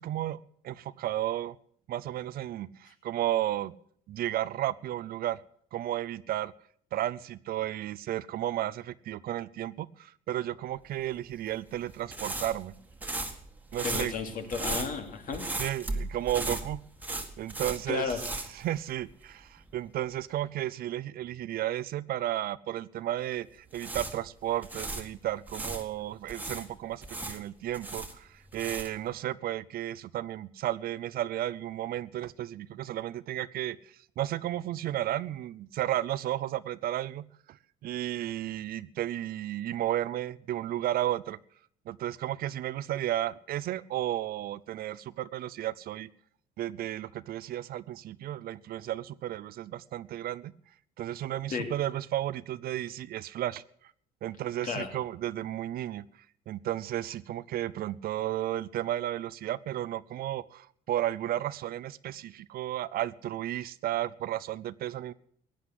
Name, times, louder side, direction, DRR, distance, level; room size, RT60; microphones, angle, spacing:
voice 1, 0.0-1.6 1.9-3.7 4.1-5.4 5.7-6.5 6.9-12.7 13.7-14.1 15.6-16.8 17.4-18.2 18.5-37.6 37.8-41.4 41.9-46.1 46.6-50.5 51.0-53.6 54.2-56.0 56.5-65.1, right 13 dB, 65° right, 18 dB, 0.6 m, -33 dB
sound 1, 11.2-19.3 19.6-19.8 23.5-25.8 26.3-29.1, right 2 dB, 10° right, 1.8 m, -37 dB
voice 2, 13.8-15.4 17.9-18.2 51.5-51.7 54.6-54.9, left 5 dB, 55° left, 5 dB, 2.9 m, -33 dB
16.0 x 10.0 x 7.7 m, 0.63 s
cardioid pair, 110°, 17 cm